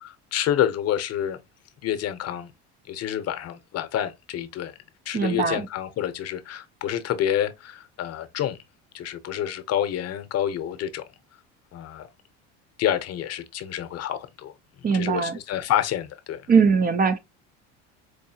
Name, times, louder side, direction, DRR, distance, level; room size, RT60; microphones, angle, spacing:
voice 1, 0.0-1.4 1.8-2.5 2.9-4.7 5.1-8.6 8.9-11.0 11.7-12.1 12.8-14.5 14.9-16.5, left 11 dB, 45° left, 0.8 m, -28 dB
voice 2, 5.1-5.7 14.8-15.4 16.5-17.2, right 5 dB, 25° right, 0.4 m, -21 dB
4.6 x 2.6 x 2.7 m
supercardioid pair, 115°, 36 cm